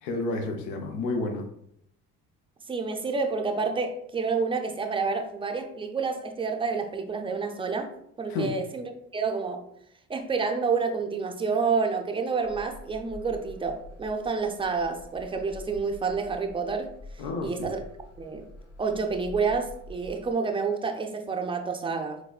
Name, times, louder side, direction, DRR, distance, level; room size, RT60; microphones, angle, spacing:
voice 1, 0.0-1.5 8.3-8.5 17.2-17.7, left 2 dB, 85° left, 4 dB, 0.6 m, -30 dB
voice 2, 2.7-7.9 8.2-9.7 10.1-16.9 17.4-17.8 18.2-18.5 18.8-22.2, right 4 dB, 15° right, 5 dB, 0.4 m, -29 dB
sound 1, 12.4-20.3, left 1 dB, 35° left, 1.1 m, -46 dB
4.1 x 2.1 x 2.3 m, 0.74 s
hypercardioid pair, 60°, 41 cm